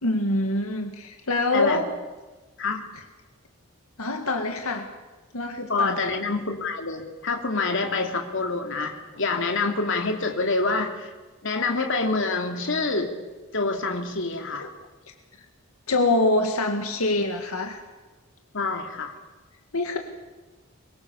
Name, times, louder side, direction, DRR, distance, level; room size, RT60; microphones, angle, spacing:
voice 1, 0.0-1.9 4.0-4.9 5.3-6.0 14.6-14.7 15.9-17.8 19.7-20.0, left 2 dB, 85° left, 4 dB, 2.0 m, -25 dB
voice 2, 1.5-1.8 2.6-2.9 5.6-11.1 11.4-13.1 13.5-14.7 18.5-19.2, left 3 dB, 60° left, 4 dB, 2.9 m, -26 dB
24.5 x 22.0 x 7.1 m, 1.2 s
head